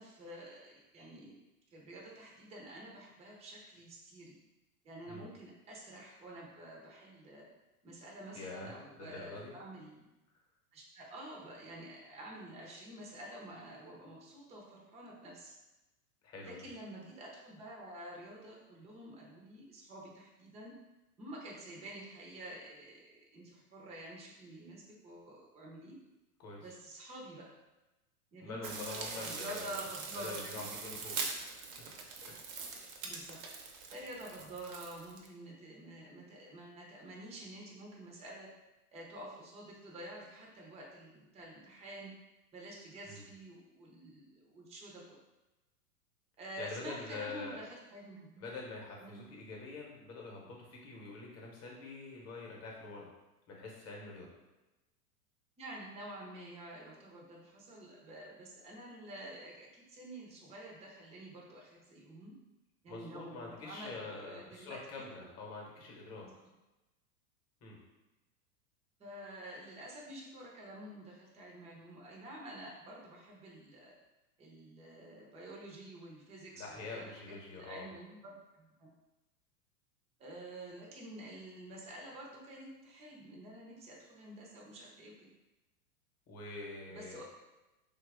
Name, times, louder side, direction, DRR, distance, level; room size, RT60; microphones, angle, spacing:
voice 1, 0.0-1.4 1.7-4.4 4.8-7.5 7.8-10.0 10.7-15.5 16.4-20.7 21.2-25.9 26.6-27.5 28.3-31.3 31.6-31.7 33.0-33.4 33.9-38.5 38.9-42.1 42.5-45.0 46.4-48.5 49.0-49.2 55.6-62.3 62.8-65.3 66.2-66.3 69.0-73.9 74.4-78.9 80.2-85.3 86.9-87.2, right 1 dB, 15° right, -3 dB, 0.6 m, -49 dB
voice 2, 8.3-9.5 16.2-16.6 26.4-26.6 28.4-29.8 30.1-31.7 32.2-32.7 34.4-34.5 43.1-43.2 46.6-47.6 48.4-53.1 53.5-54.3 62.9-66.3 67.6-67.8 76.6-77.9 86.3-87.2, left 3 dB, 30° left, -1 dB, 1.0 m, -46 dB
sound 1, 28.6-35.3, right 4 dB, 55° right, 0.7 m, -42 dB
3.0 x 2.4 x 3.4 m, 1.0 s
hypercardioid pair, 110°, 47 cm